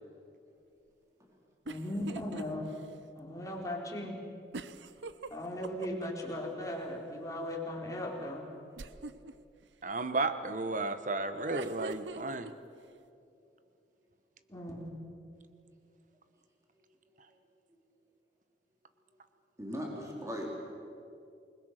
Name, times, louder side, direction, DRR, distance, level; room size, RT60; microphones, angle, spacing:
voice 1, 1.7-2.7 3.1-4.2 5.3-8.5 14.5-14.9, left 1 dB, 20° left, -1 dB, 3.8 m, -38 dB
sound 1, 1.7-2.4 2.8-2.9 4.5-6.3 8.8-9.3 11.3-12.5, right 4 dB, 90° right, 0.8 m, -42 dB
voice 2, 9.8-12.5, right 3 dB, 45° right, 10 dB, 1.2 m, -33 dB
voice 3, 19.6-20.5, equal, 15° right, -2 dB, 3.8 m, -38 dB
28.0 x 21.0 x 6.6 m, 2.5 s
head